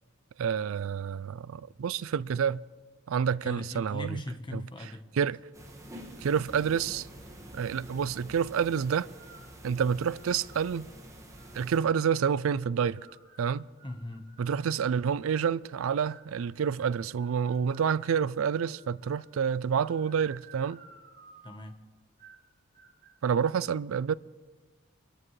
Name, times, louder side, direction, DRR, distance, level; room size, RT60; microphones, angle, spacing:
voice 1, 0.4-2.6 3.1-4.2 4.5-4.6 5.2-5.4 6.2-7.1 7.5-9.1 9.6-10.9 11.5-13.0 13.4-13.7 14.4-20.8 23.2-24.1, right 7 dB, 80° right, 0.4 m, -28 dB
voice 2, 3.4-5.1 13.8-14.3 21.4-21.8, left 1 dB, 25° left, 1.1 m, -38 dB
sound 1, 5.5-11.8, equal, 15° right, 1.7 m, -48 dB
sound 2, 9.2-9.6 10.1-10.7 11.4-12.3 12.9-14.8 15.4-18.2 18.7-19.3 19.7-21.7 22.2-22.5 22.7-23.2, right 5 dB, 55° right, 5.3 m, -55 dB
24.5 x 13.0 x 3.2 m
head